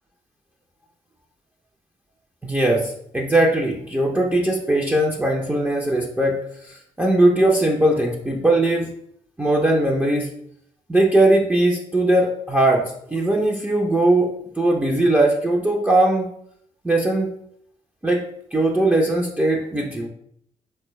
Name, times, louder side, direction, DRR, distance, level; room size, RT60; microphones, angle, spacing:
voice 1, 2.4-8.9 9.4-10.3 10.9-16.3 16.8-17.3 18.0-20.1, right 1 dB, 10° right, -1 dB, 0.5 m, -20 dB
3.8 x 2.2 x 3.0 m, 0.70 s
supercardioid pair, 50°, 14 cm